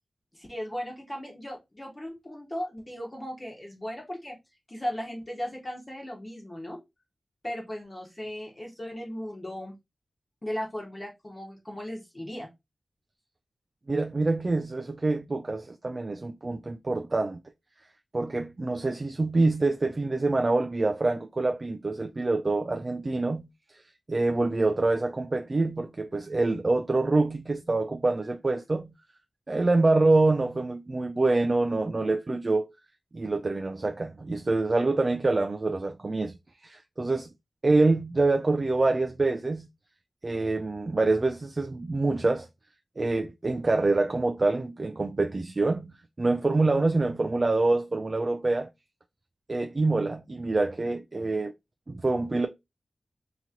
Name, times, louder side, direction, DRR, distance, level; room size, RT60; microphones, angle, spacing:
voice 1, 0.3-4.4 4.7-6.8 7.4-9.7 10.4-12.5, equal, 25° left, 1.2 m, -37 dB
voice 2, 13.9-17.4 18.1-23.5 24.1-28.9 29.5-32.7 33.1-36.4 36.6-37.3 37.6-39.7 40.2-42.5 43.0-48.7 49.5-51.5 51.9-52.5, right 2 dB, 35° right, 0.3 m, -26 dB
2.9 x 2.9 x 3.7 m
wide cardioid pair, 115°, 0 cm